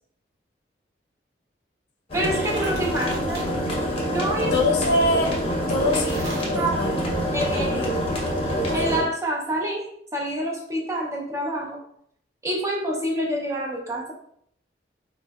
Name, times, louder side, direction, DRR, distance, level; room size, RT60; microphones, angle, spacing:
sound 1, 2.1-9.0, equal, 30° left, 0.7 m, -26 dB
voice 1, 2.1-3.4 4.1-4.5 6.6-6.8 7.3-7.9 8.7-9.9 10.1-11.8 12.4-14.1, right 1 dB, 15° right, -1 dB, 0.4 m, -27 dB
sound 2, 2.2-3.5 5.9-6.4, right 1 dB, 75° right, 1.0 m, -39 dB
voice 2, 4.5-5.3 5.7-6.9 7.7-8.0, left 2 dB, 70° left, 1 dB, 0.5 m, -24 dB
3.6 x 2.1 x 2.2 m, 0.68 s
head